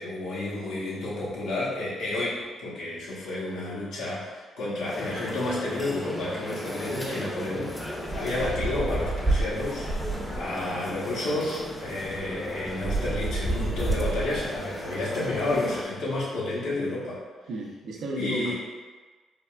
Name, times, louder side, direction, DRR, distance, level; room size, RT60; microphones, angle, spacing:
voice 1, 0.0-17.2 18.2-18.5, left 2 dB, 80° left, -8 dB, 0.9 m, -31 dB
sound 1, 4.9-15.9, equal, 15° left, 0.6 m, -37 dB
voice 2, 7.0-7.3 17.5-18.5, right 2 dB, 75° right, -2 dB, 0.5 m, -34 dB
sound 2, 8.0-10.6 11.6-11.7 12.0-14.6, right 2 dB, 40° right, 0.8 m, -29 dB
3.4 x 2.3 x 2.3 m, 1.3 s
hypercardioid pair, 50°, 0 cm